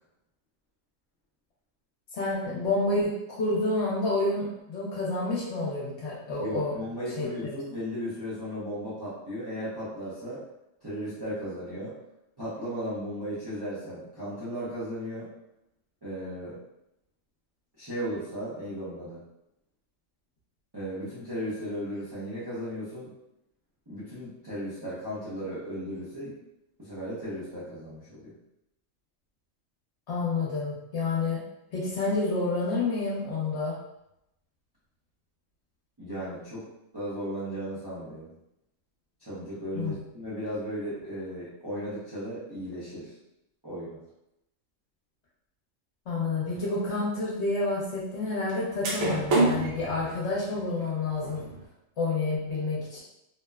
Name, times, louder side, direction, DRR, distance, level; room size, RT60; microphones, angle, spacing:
voice 1, 2.1-3.1 3.4-6.7 7.2-7.6 30.1-31.4 31.7-33.8 39.7-40.0 46.1-51.4 52.0-53.0, left 3 dB, 60° left, -5 dB, 1.0 m, -29 dB
voice 2, 6.4-10.4 10.8-11.9 12.4-15.3 16.0-16.6 17.8-19.2 20.7-23.1 23.9-26.3 26.8-28.3 36.0-36.6 36.9-38.3 39.2-43.2 43.6-44.0, equal, 25° right, -10 dB, 0.5 m, -36 dB
sound 1, 46.5-46.7 48.5-48.6 48.8-51.6, right 2 dB, 90° right, 1.0 m, -28 dB
2.8 x 2.1 x 2.2 m, 0.84 s
omnidirectional pair, 1.4 m